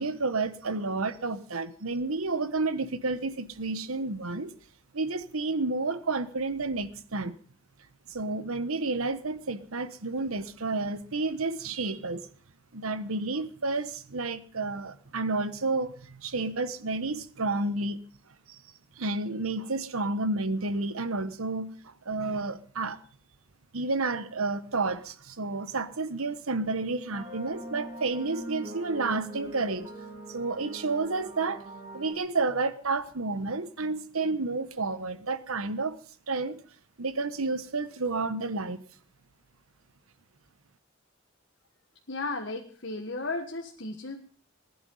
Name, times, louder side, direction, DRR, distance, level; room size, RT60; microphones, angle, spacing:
voice 1, 0.0-4.5 4.9-7.3 8.1-12.3 12.7-18.0 18.5-18.6 19.0-23.0 23.7-29.9 30.3-31.6 31.9-36.0 36.3-36.6 37.0-38.8, right 3 dB, 85° right, 1.2 m, -30 dB
sound 1, 27.1-32.1, right 1 dB, 20° right, 4.5 m, -42 dB
voice 2, 42.1-44.2, left 3 dB, 55° left, 1.6 m, -34 dB
20.5 x 11.0 x 5.5 m
head